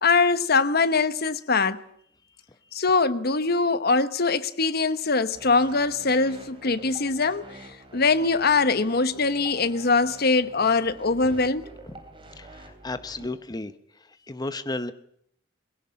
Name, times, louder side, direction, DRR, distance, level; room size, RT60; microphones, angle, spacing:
voice 1, 0.0-1.8 2.7-7.4 7.9-11.6, left 4 dB, 55° left, 1.1 m, -22 dB
sound 1, 5.3-13.3, right 2 dB, 30° right, 3.7 m, -47 dB
voice 2, 12.4-13.7 14.3-14.9, left 2 dB, 20° left, 0.9 m, -33 dB
22.5 x 16.5 x 8.6 m
head